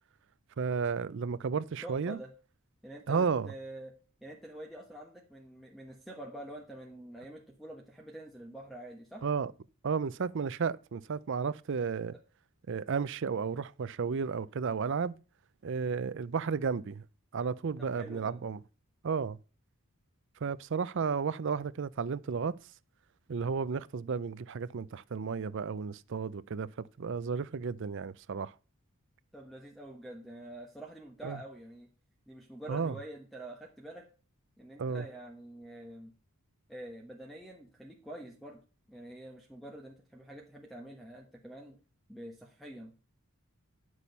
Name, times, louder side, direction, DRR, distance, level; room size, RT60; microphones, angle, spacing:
voice 1, 0.6-2.2 3.1-3.5 9.2-9.5 9.8-12.2 12.7-15.2 15.6-17.0 17.3-18.6 19.0-19.4 20.4-22.6 23.3-28.5 31.2-31.4 32.7-33.0 34.8-35.1, right 5 dB, 55° right, 0.5 m, -33 dB
voice 2, 1.8-2.3 2.8-3.9 4.2-9.2 17.8-18.3 29.3-31.9 32.3-34.1 34.6-36.1 36.7-38.6 38.9-41.8 42.1-42.9, right 1 dB, ahead, 1.2 m, -46 dB
10.0 x 6.3 x 5.4 m
head